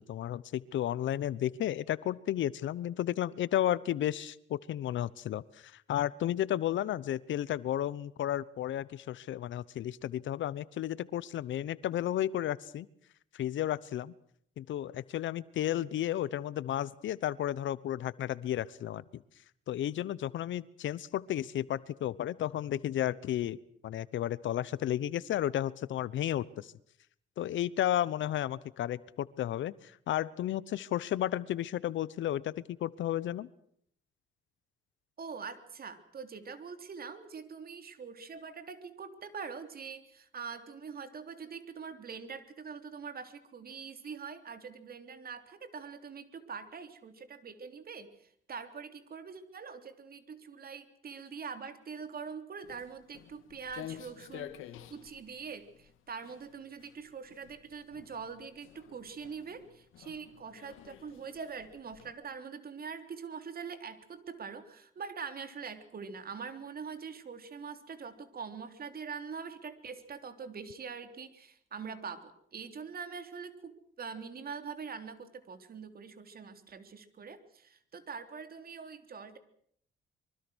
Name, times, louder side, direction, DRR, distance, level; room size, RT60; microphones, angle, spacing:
voice 1, 0.0-12.9 13.3-14.1 14.6-19.2 19.7-23.6 23.8-26.7 27.4-33.5, left 12 dB, 70° left, 19 dB, 1.0 m, -33 dB
voice 2, 35.2-54.6 54.9-79.4, right 6 dB, 50° right, 9 dB, 3.5 m, -44 dB
Walk footsteps, 52.6-62.1, left 11 dB, 90° left, 2.0 m, -50 dB
25.0 x 23.5 x 6.3 m, 0.66 s
cardioid pair, 90°, 20 cm